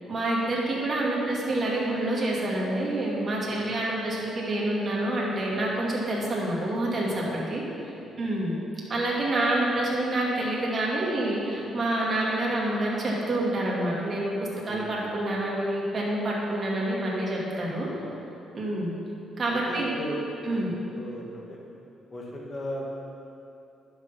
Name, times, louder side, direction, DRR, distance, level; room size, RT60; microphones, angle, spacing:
voice 1, 0.1-7.6 8.2-8.5 8.9-17.9 18.5-18.9 19.4-19.9 20.5-20.7, right 1 dB, 40° right, -4 dB, 2.2 m, -27 dB
voice 2, 14.7-15.1 17.8-18.2 19.5-20.2 20.5-21.6 22.1-22.8, left 1 dB, 30° left, -3 dB, 2.1 m, -38 dB
10.5 x 6.5 x 5.6 m, 2.8 s
cardioid pair, 90°, 0 cm